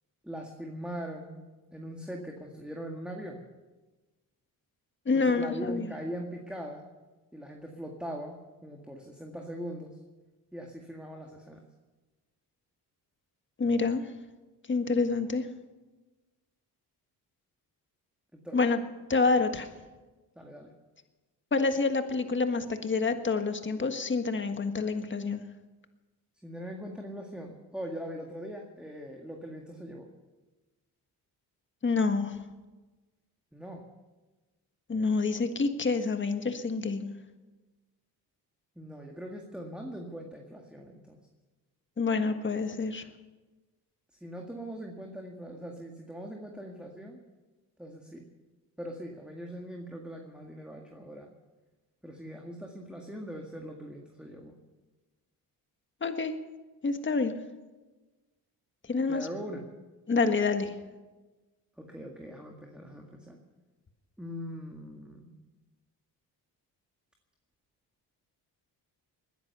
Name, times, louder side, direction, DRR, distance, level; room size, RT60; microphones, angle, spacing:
voice 1, 0.2-1.4 1.7-3.4 5.1-6.9 7.3-9.9 10.5-11.6 18.3-18.6 20.4-20.7 26.4-30.1 33.5-33.8 38.8-41.2 44.2-47.2 47.8-48.3 48.8-51.3 52.0-54.6 59.1-59.6 61.8-63.4 64.2-65.3, equal, ahead, 1 dB, 1.9 m, -41 dB
voice 2, 5.0-5.9 13.6-14.1 14.7-15.5 18.5-18.8 19.1-19.7 21.5-25.4 31.8-32.4 34.9-37.1 42.0-43.0 56.0-56.4 56.8-57.4 58.9-59.3 60.1-60.7, left 4 dB, 30° left, 7 dB, 1.6 m, -27 dB
20.5 x 10.5 x 6.8 m, 1.2 s
cardioid pair, 90°, 39 cm